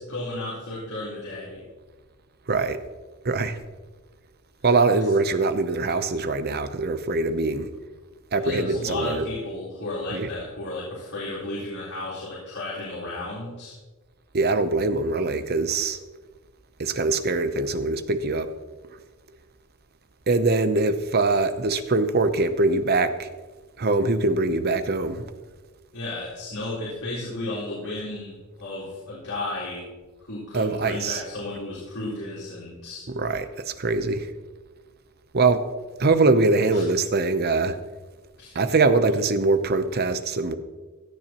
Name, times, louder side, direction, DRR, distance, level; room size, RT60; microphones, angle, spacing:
voice 1, 0.0-1.7 4.9-5.1 8.4-13.7 25.9-29.9 30.2-33.1 36.7-36.9 38.4-38.6, left 2 dB, 85° left, 4.0 m, -33 dB
voice 2, 2.5-2.8 3.2-3.6 4.6-7.7 8.3-9.2 10.1-10.3 14.3-16.0 16.8-18.5 20.3-23.3 23.8-25.2 30.5-31.2 33.1-34.3 35.3-35.7 36.0-37.8 38.5-40.6, right 3 dB, 45° right, 0.8 m, -23 dB
17.0 x 12.0 x 3.0 m
head